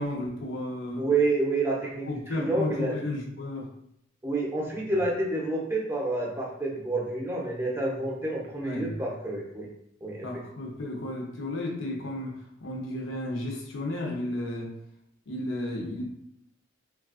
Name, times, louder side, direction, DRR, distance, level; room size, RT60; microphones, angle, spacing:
voice 1, 0.0-1.1 2.1-3.7 4.9-5.0 8.6-9.0 10.2-12.3 12.6-14.7 15.3-16.0, left 1 dB, 80° left, -1 dB, 0.7 m, -33 dB
voice 2, 1.0-2.1 2.4-2.9 4.2-9.7 10.0-10.3, right 2 dB, 10° right, -3 dB, 0.5 m, -28 dB
3.2 x 2.3 x 2.4 m, 0.73 s
head